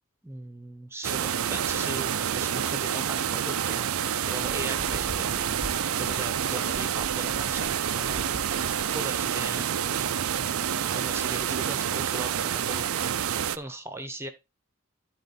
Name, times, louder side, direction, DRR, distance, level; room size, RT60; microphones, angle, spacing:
voice 1, 0.2-4.0 4.2-5.4 6.0-8.4 8.9-9.7 10.3-12.9 13.5-14.3, right 1 dB, 10° right, 8 dB, 1.0 m, -39 dB
sound 1, 1.0-13.6, right 9 dB, 80° right, 0.5 m, -28 dB
sound 2, 4.4-10.1 10.5-10.8 11.3-11.4 11.8-11.9, equal, 20° left, 1.8 m, -43 dB
11.5 x 4.4 x 4.2 m, 0.25 s
head